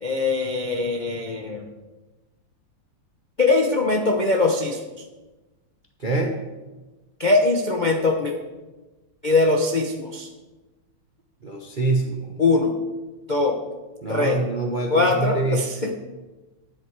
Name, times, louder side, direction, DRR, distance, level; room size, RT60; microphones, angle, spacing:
voice 1, 0.0-1.6 3.4-4.8 7.2-8.3 9.2-10.3 12.4-12.7 13.3-13.6 14.1-14.4 14.9-15.9, left 3 dB, 70° left, 1 dB, 0.4 m, -21 dB
voice 2, 6.0-6.3 11.4-12.4 14.0-15.9, right 3 dB, 55° right, 1 dB, 0.5 m, -25 dB
11.0 x 9.5 x 4.7 m, 1.2 s
omnidirectional pair, 2.4 m